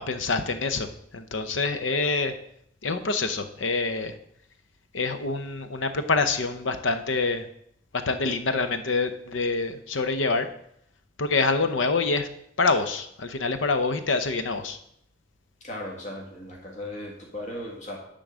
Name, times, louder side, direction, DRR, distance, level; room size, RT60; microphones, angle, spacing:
voice 1, 0.0-2.3 2.8-4.2 4.9-7.5 7.9-10.5 11.2-12.3 12.6-14.8, left 3 dB, 75° left, 9 dB, 0.8 m, -26 dB
voice 2, 15.6-18.0, left 1 dB, 40° left, -2 dB, 1.7 m, -37 dB
10.0 x 3.8 x 6.2 m, 0.71 s
head